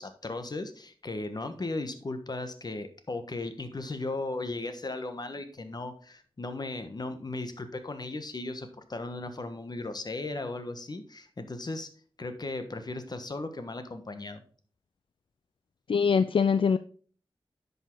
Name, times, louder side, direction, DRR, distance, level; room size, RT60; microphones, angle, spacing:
voice 1, 0.0-11.9 12.2-14.4, left 2 dB, 45° left, 8 dB, 1.3 m, -36 dB
voice 2, 15.9-16.8, left 6 dB, 70° left, 13 dB, 0.4 m, -23 dB
10.5 x 5.5 x 3.9 m, 0.43 s
wide cardioid pair, 70°, 9 cm